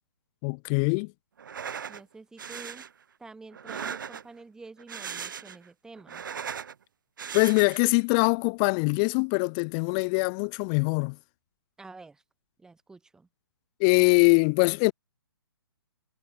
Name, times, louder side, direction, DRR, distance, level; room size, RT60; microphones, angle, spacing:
voice 1, 0.4-1.1 7.3-11.2 13.8-14.9, left 38 dB, 15° left, 0.4 m, -23 dB
sound 1, 1.4-2.0 2.4-2.9 3.5-4.4 4.8-5.7 6.0-6.7 7.2-7.9, right 7 dB, 50° right, 1.5 m, -38 dB
voice 2, 1.9-2.9 3.2-6.3 11.8-12.2 12.6-13.3, right 3 dB, 5° right, 2.9 m, -48 dB
figure-of-eight pair, 130°, 14 cm